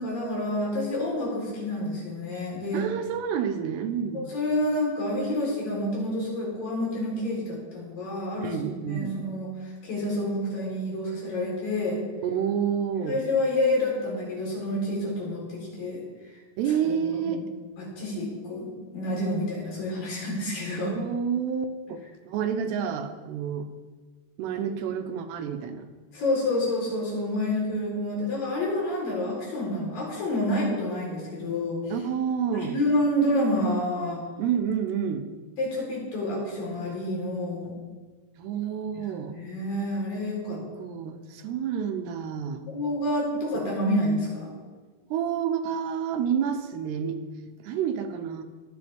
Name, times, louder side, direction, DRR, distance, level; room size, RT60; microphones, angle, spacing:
voice 1, 0.0-2.8 4.1-8.5 8.9-9.5 9.8-12.0 13.1-16.0 16.8-16.9 17.2-17.4 17.8-21.0 22.6-22.7 26.1-31.8 32.5-34.2 35.6-37.7 39.3-40.6 42.7-44.5, left 1 dB, 55° left, -4 dB, 5.6 m, -28 dB
voice 2, 2.7-4.3 8.4-9.2 12.2-13.2 16.6-17.4 20.8-23.7 24.4-25.9 31.9-32.8 34.4-35.3 38.4-39.4 40.5-42.6 43.5-43.7 45.1-47.2 47.6-48.4, right 8 dB, 85° right, 6 dB, 3.1 m, -29 dB
24.0 x 8.9 x 3.6 m, 1.4 s
omnidirectional pair, 4.7 m